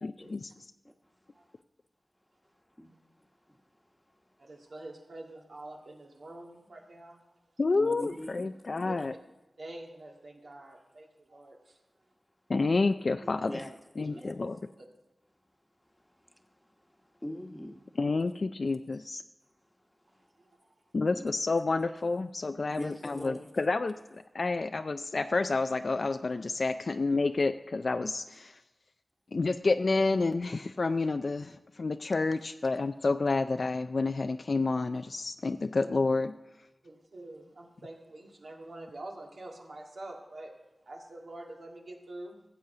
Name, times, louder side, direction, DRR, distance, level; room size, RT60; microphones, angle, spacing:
voice 1, 0.0-0.5 7.6-9.1 12.5-13.5 14.0-14.6 18.0-19.2 20.9-28.5 29.3-36.3, left 3 dB, 65° left, 8 dB, 0.4 m, -29 dB
voice 2, 2.8-3.6 7.7-8.5 8.8-9.0 13.5-13.7 14.1-14.3 16.0-16.7 17.1-17.8 20.1-20.3 21.1-21.3 22.7-23.5, equal, 10° left, 5 dB, 1.2 m, -43 dB
voice 3, 4.4-7.6 8.8-8.9 9.6-12.1 13.4-13.5 14.0-14.5 14.8-14.9 20.0-20.9 36.8-42.5, right 2 dB, 80° right, 0 dB, 2.0 m, -47 dB
15.0 x 7.5 x 3.8 m, 1.1 s
wide cardioid pair, 60°, 0 cm